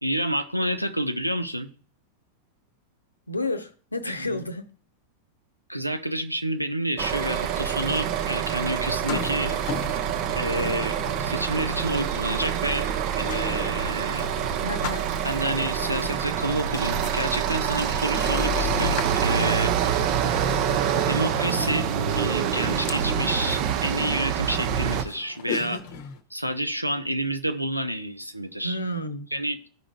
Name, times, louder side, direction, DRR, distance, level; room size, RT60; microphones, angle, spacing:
voice 1, 0.0-1.7 4.2-4.4 5.7-9.5 10.4-12.9 13.2-14.2 15.2-20.0 21.1-25.8 26.3-28.8 29.3-29.7, right 1 dB, 90° right, 0.6 m, -29 dB
voice 2, 3.3-4.7 14.6-15.2 28.6-29.3, left 1 dB, 80° left, 0.7 m, -31 dB
sound 1, 7.0-25.0, right 8 dB, 45° right, 0.7 m, -26 dB
sound 2, 9.0-26.2, left 6 dB, 50° left, 0.8 m, -40 dB
14.0 x 5.0 x 2.3 m
figure-of-eight pair, 90°, 0 cm